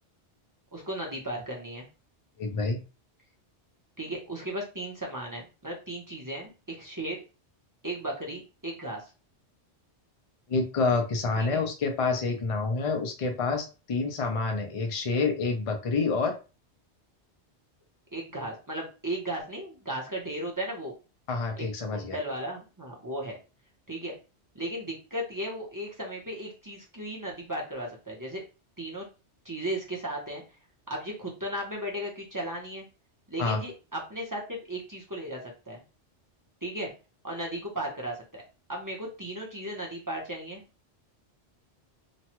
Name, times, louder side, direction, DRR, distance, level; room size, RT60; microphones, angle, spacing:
voice 1, 0.7-1.9 4.0-7.2 7.8-9.1 11.4-11.6 18.1-20.9 21.6-21.7 21.9-23.4 23.9-24.1 24.5-28.4 28.8-29.1 29.4-30.4 30.9-32.8 33.3-35.8 36.6-36.9 37.2-38.4 38.7-40.6, right 1 dB, 20° right, -2 dB, 0.6 m, -35 dB
voice 2, 2.4-2.8 10.5-16.3 21.3-22.2 33.4-33.6, left 4 dB, 45° left, 4 dB, 0.4 m, -28 dB
3.0 x 2.2 x 2.8 m, 0.32 s
omnidirectional pair, 1.2 m